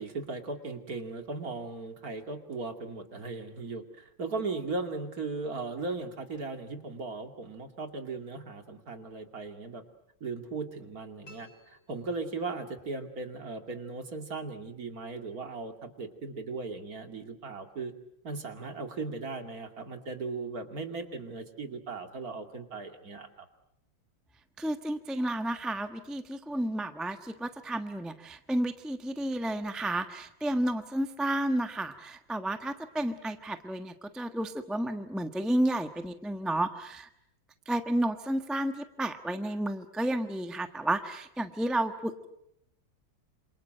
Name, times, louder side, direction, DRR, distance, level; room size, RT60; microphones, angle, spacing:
voice 1, 0.0-9.8 10.2-17.9 18.2-23.5, right 3 dB, 45° right, 6 dB, 2.8 m, -37 dB
sound 1, 11.2-12.8, left 2 dB, 70° left, 7.9 m, -57 dB
voice 2, 24.6-37.1 37.7-42.3, right 1 dB, ahead, 8 dB, 1.0 m, -31 dB
27.5 x 27.5 x 7.8 m, 0.78 s
omnidirectional pair, 2.2 m